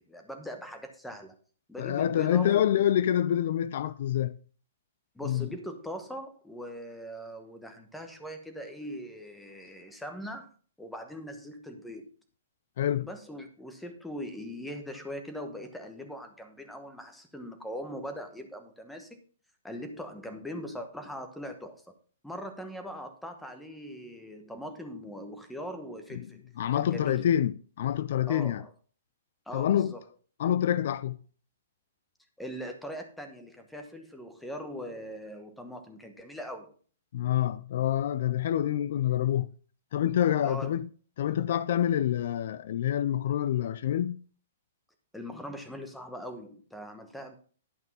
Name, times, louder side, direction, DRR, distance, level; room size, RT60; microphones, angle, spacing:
voice 1, 0.0-1.4 1.7-2.8 5.1-10.5 10.8-12.1 13.0-19.2 19.6-21.8 22.2-26.5 26.7-27.2 28.3-28.7 29.5-30.0 32.4-36.7 40.4-40.7 45.1-47.4, equal, ahead, 1.1 m, -41 dB
voice 2, 1.8-4.4 5.2-5.5 12.8-13.1 26.1-26.3 26.6-28.6 29.5-29.9 30.4-31.2 37.1-39.5 39.9-40.9 41.2-44.2, left 10 dB, 50° left, 0.4 m, -27 dB
11.5 x 5.3 x 5.5 m
hypercardioid pair, 165°, 0 cm